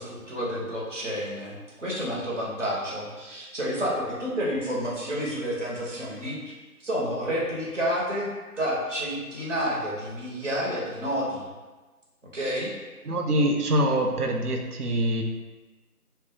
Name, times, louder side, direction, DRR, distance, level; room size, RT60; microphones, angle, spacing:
voice 1, 0.0-6.4 6.8-8.3 8.6-11.5 12.3-12.7, equal, 55° right, -5 dB, 0.9 m, -30 dB
voice 2, 13.0-15.2, right 1 dB, 80° right, 3 dB, 0.6 m, -24 dB
2.4 x 2.1 x 3.8 m, 1.2 s
figure-of-eight pair, 165°, 45 cm